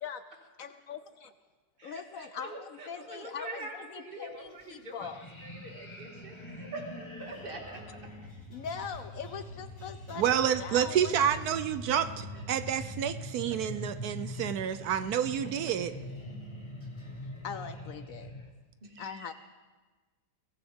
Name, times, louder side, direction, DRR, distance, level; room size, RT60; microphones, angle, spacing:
voice 1, 0.6-1.3 1.8-5.2 8.5-11.3 17.4-18.4 19.0-19.3, left 7 dB, 65° left, 11 dB, 0.9 m, -41 dB
voice 2, 1.8-5.1 5.4-7.8 12.3-12.4 18.8-19.3, right 2 dB, 30° right, 0 dB, 2.4 m, -44 dB
sound 1, 4.4-5.0 5.9-17.6, right 3 dB, 15° right, 1.8 m, -54 dB
sound 2, 5.0-18.5, left 1 dB, 20° left, 1.3 m, -43 dB
voice 3, 10.2-15.9, right 9 dB, 70° right, 12 dB, 1.1 m, -29 dB
22.5 x 17.0 x 3.6 m, 1.3 s
omnidirectional pair, 1.8 m